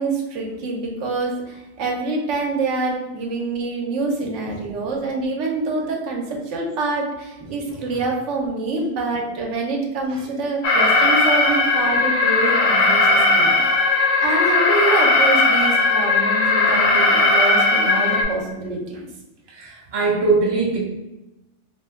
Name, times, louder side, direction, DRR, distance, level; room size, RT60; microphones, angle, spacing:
voice 1, 0.0-13.8 14.2-18.9, right 3 dB, 80° right, 0 dB, 1.0 m, -26 dB
Alarm, 10.6-18.2, left 3 dB, 80° left, 1.0 m, -17 dB
voice 2, 19.5-20.8, right 3 dB, 40° right, -4 dB, 0.4 m, -22 dB
2.5 x 2.1 x 3.4 m, 0.97 s
omnidirectional pair, 1.2 m